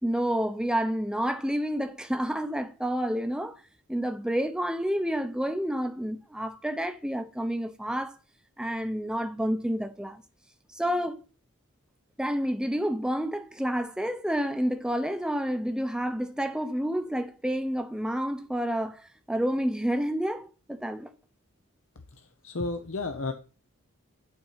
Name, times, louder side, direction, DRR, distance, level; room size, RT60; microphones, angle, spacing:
voice 1, 0.0-3.6 3.9-8.1 8.6-10.2 10.7-11.2 12.2-21.1, equal, 5° right, 0.8 m, -29 dB
voice 2, 22.1-23.3, left 3 dB, 65° left, 0.8 m, -33 dB
11.5 x 4.3 x 5.7 m
head